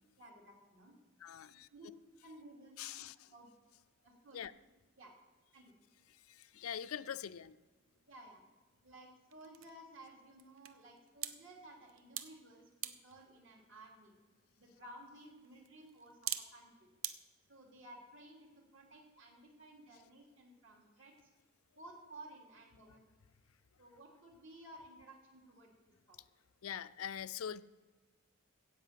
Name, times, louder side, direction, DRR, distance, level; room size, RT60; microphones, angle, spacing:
voice 1, 0.2-1.0 1.7-1.9 2.2-3.0 3.3-3.5 4.0-4.4 5.0-5.2 5.5-5.7 8.1-8.4 8.8-14.1 14.6-16.9 17.5-21.1 21.7-23.0 23.8-25.7 26.1-26.2, right 1 dB, 65° right, 0 dB, 3.1 m, -56 dB
voice 2, 1.2-1.7 2.8-3.1 4.3-4.5 6.3-7.6 26.6-27.6, left 9 dB, 85° left, 15 dB, 0.5 m, -43 dB
sound 1, 7.8-17.1, right 11 dB, 85° right, 0.8 m, -49 dB
16.5 x 5.6 x 7.6 m, 1.2 s
head